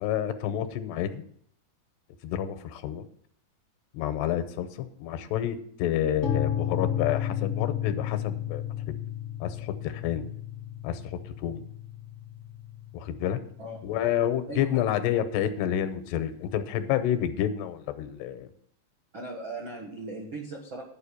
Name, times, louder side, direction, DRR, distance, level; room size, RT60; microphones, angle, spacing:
voice 1, 0.0-1.2 2.2-3.1 3.9-9.0 9.4-10.2 10.8-11.6 12.9-13.4 13.8-18.5, left 10 dB, 85° left, 11 dB, 2.8 m, -29 dB
sound 1, 6.2-14.1, left 10 dB, 55° left, 1.0 m, -33 dB
voice 2, 14.5-14.8 19.1-20.8, right 2 dB, 80° right, -1 dB, 1.1 m, -38 dB
11.0 x 5.2 x 8.4 m, 0.65 s
omnidirectional pair, 4.9 m